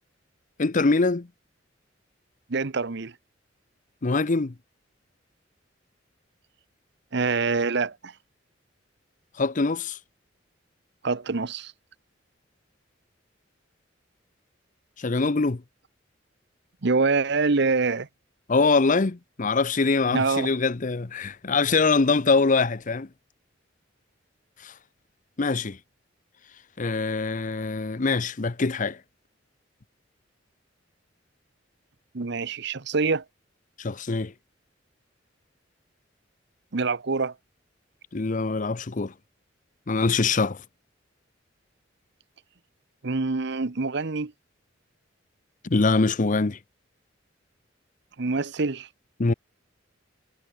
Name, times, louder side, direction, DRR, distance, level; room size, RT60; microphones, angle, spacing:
voice 1, 0.6-1.3 4.0-4.5 9.4-10.0 15.0-15.6 18.5-23.1 24.6-24.7 25.4-25.8 26.8-29.0 33.8-34.3 38.1-39.1 39.9-40.6 45.6-46.6 49.2-49.3, left 3 dB, 40° left, 0.7 m, -23 dB
voice 2, 2.5-3.1 7.1-8.1 11.0-11.7 16.8-18.1 20.1-20.5 32.1-33.2 36.7-37.3 43.0-44.3 48.2-48.9, right 4 dB, 60° right, 0.9 m, -25 dB
head